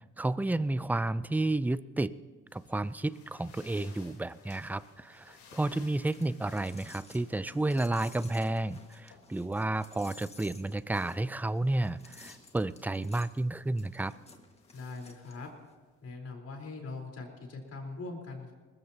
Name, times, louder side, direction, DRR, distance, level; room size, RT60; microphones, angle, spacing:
voice 1, 0.0-2.1 2.5-14.1, right 2 dB, 5° right, 15 dB, 0.5 m, -31 dB
sound 1, 2.5-16.1, left 5 dB, 70° left, 3.7 m, -60 dB
sound 2, 6.0-15.7, left 2 dB, 20° left, 1.8 m, -55 dB
voice 2, 14.7-15.5 16.0-18.5, left 3 dB, 55° left, 1 dB, 4.2 m, -41 dB
22.5 x 19.5 x 2.9 m, 1.4 s
cardioid pair, 90°, 30 cm